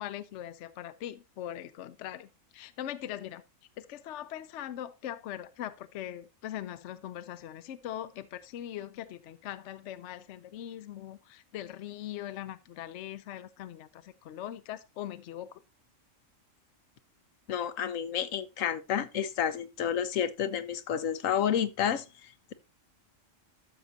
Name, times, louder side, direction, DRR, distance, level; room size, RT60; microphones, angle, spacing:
voice 1, 0.0-3.4 3.8-15.6, left 11 dB, 70° left, 0.9 m, -41 dB
voice 2, 17.5-22.5, left 9 dB, 85° left, 1.2 m, -30 dB
12.5 x 6.1 x 2.7 m
omnidirectional pair, 1.3 m